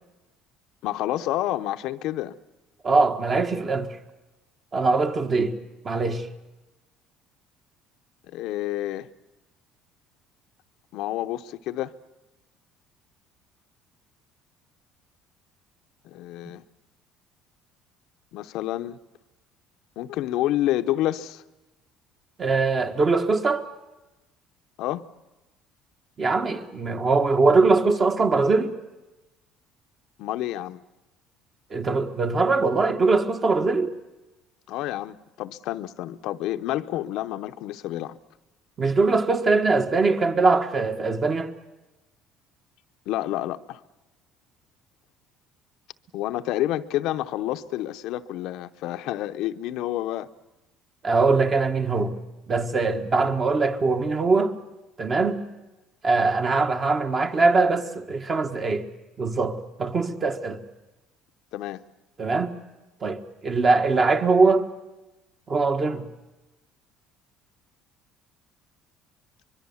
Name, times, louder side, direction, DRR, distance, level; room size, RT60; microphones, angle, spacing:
voice 1, 0.8-2.4 8.3-9.1 10.9-11.9 16.0-16.6 18.3-19.0 20.0-21.4 24.8-25.0 30.2-30.8 34.7-38.2 43.1-43.8 46.1-50.3 61.5-61.8, left 14 dB, 70° left, 0.7 m, -29 dB
voice 2, 2.8-3.9 4.7-5.6 5.8-6.3 22.4-23.7 26.2-28.7 31.7-33.9 38.8-41.5 51.0-52.2 52.5-54.5 55.0-55.4 56.0-58.8 59.2-60.6 62.2-62.6 63.0-64.6 65.5-66.1, right 3 dB, 30° right, 1.6 m, -22 dB
24.0 x 22.5 x 7.1 m
cardioid pair, 120°, 0 cm